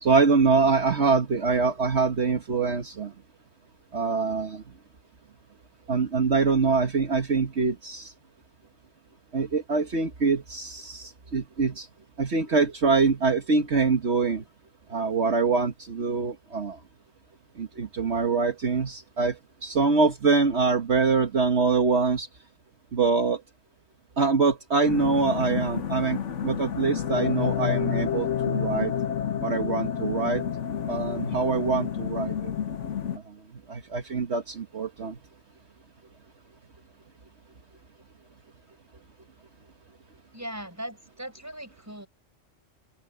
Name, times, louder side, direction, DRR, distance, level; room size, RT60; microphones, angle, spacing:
voice 1, 0.0-3.1 3.9-4.6 5.9-8.1 9.3-11.9 12.2-14.4 14.9-16.8 17.6-22.3 22.9-23.4 24.2-28.9 29.4-30.4 30.9-32.5 33.7-35.2, right 4 dB, 60° right, 1.8 m, -24 dB
sound 1, 24.9-33.2, left 9 dB, 70° left, 1.4 m, -29 dB
voice 2, 40.3-42.1, right 1 dB, 15° right, 5.1 m, -39 dB
open air
omnidirectional pair, 1.3 m